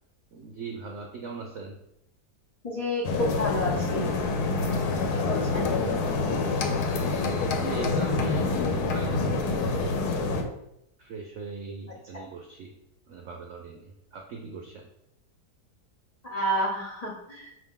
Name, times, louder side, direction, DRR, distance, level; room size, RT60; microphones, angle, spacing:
voice 1, 0.3-1.8 7.6-8.6 8.8-10.0 11.0-12.7 13.1-14.9, right 4 dB, 65° right, 1 dB, 0.7 m, -39 dB
voice 2, 2.6-4.1 5.3-5.7 16.2-17.5, equal, 90° left, -4 dB, 0.3 m, -30 dB
sound 1, 3.0-10.4, left 3 dB, 70° left, 1.1 m, -27 dB
5.2 x 2.8 x 3.6 m, 0.82 s
omnidirectional pair, 1.8 m